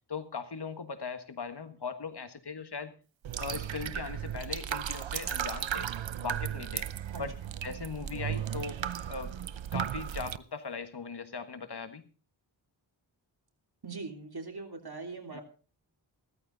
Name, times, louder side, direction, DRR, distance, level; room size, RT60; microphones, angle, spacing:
voice 1, 0.1-2.9 3.4-5.9 6.2-6.9 7.2-7.3 7.6-8.8 9.1-9.3 9.7-12.0 15.3-15.4, left 5 dB, 60° left, 10 dB, 1.5 m, -39 dB
sound 1, 3.2-10.4, right 9 dB, 85° right, 0.7 m, -35 dB
voice 2, 13.8-15.4, right 3 dB, 55° right, 3 dB, 3.3 m, -41 dB
15.5 x 14.0 x 3.9 m, 0.36 s
wide cardioid pair, 65°, 45 cm